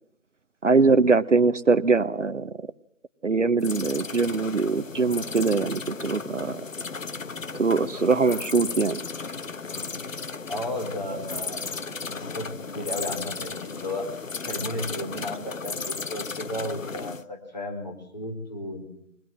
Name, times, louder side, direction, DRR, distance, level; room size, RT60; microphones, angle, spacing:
voice 1, 0.6-2.5 3.2-6.6 7.6-9.0, right 4 dB, 60° right, 14 dB, 0.8 m, -22 dB
sound 1, 3.6-17.2, left 4 dB, 65° left, 1.0 m, -35 dB
voice 2, 10.5-11.8 12.1-14.1 14.4-18.9, left 1 dB, 30° left, 3 dB, 3.9 m, -34 dB
22.0 x 18.5 x 7.6 m, 0.69 s
figure-of-eight pair, 170°, 42 cm